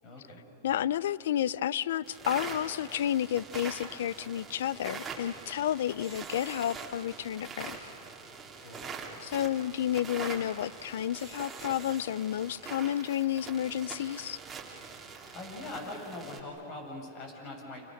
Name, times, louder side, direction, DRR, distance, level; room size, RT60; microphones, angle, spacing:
voice 1, 0.0-0.4 8.5-8.9 15.3-17.8, left 2 dB, 40° left, 2 dB, 7.1 m, -42 dB
voice 2, 0.6-7.8 9.2-14.4, left 11 dB, 75° left, 20 dB, 0.5 m, -31 dB
sound 1, 2.0-16.4, right 5 dB, 15° right, 2.8 m, -43 dB
29.5 x 27.5 x 6.6 m, 2.8 s
hypercardioid pair, 130°, 0 cm